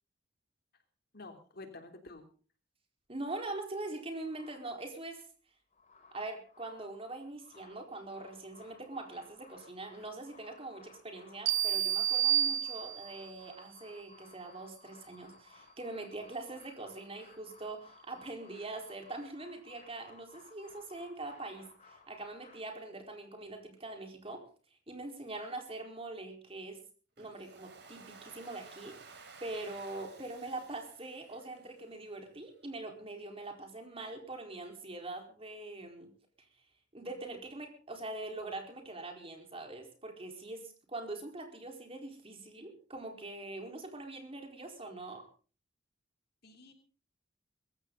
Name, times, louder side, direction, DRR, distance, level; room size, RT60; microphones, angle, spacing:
voice 1, 1.1-2.3 46.4-46.7, left 2 dB, 55° left, 6 dB, 3.3 m, -49 dB
voice 2, 3.1-5.2 6.1-24.4 24.9-26.8 27.2-36.1 36.9-45.2, right 2 dB, 30° right, 3 dB, 4.4 m, -43 dB
sound 1, 4.2-5.1 5.5-6.9 7.3-22.6, left 4 dB, 35° left, 6.9 m, -59 dB
sound 2, 11.5-13.3, right 10 dB, 80° right, 1.2 m, -29 dB
Domestic sounds home sounds, 27.2-32.1, right 4 dB, 65° right, 4.3 m, -54 dB
21.5 x 15.0 x 4.0 m, 0.39 s
head